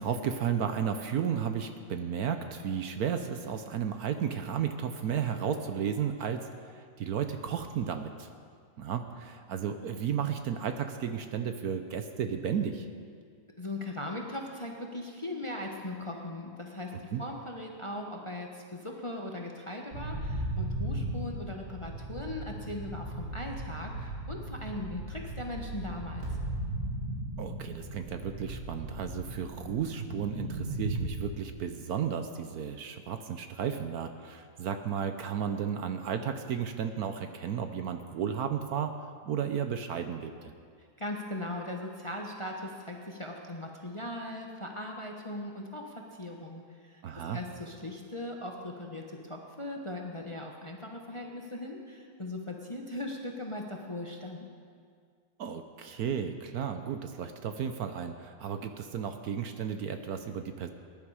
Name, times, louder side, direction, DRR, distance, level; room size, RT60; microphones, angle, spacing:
voice 1, 0.0-8.3 8.8-12.9 16.9-17.2 27.4-38.9 39.2-40.5 47.0-47.4 55.4-60.7, right 8 dB, 65° right, 7 dB, 1.1 m, -33 dB
voice 2, 13.6-26.3 41.0-54.5, left 1 dB, 20° left, 1 dB, 0.9 m, -39 dB
sound 1, 19.9-31.0, right 1 dB, 85° right, 3.8 m, -37 dB
20.0 x 11.0 x 4.9 m, 2.1 s
omnidirectional pair, 1.9 m